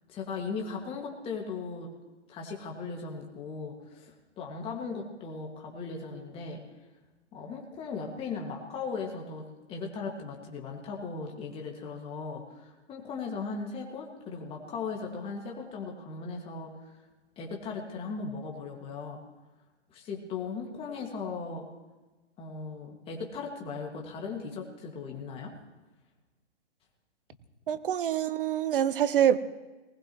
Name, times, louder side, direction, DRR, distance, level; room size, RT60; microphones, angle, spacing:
voice 1, 0.1-1.9 2.3-6.6 7.3-16.9 17.4-19.2 19.9-21.7 22.4-25.6, left 4 dB, 15° left, 0 dB, 2.0 m, -38 dB
voice 2, 27.7-29.4, right 10 dB, 50° right, 14 dB, 0.9 m, -25 dB
19.5 x 19.5 x 3.1 m, 1.2 s
hypercardioid pair, 145°, 35 cm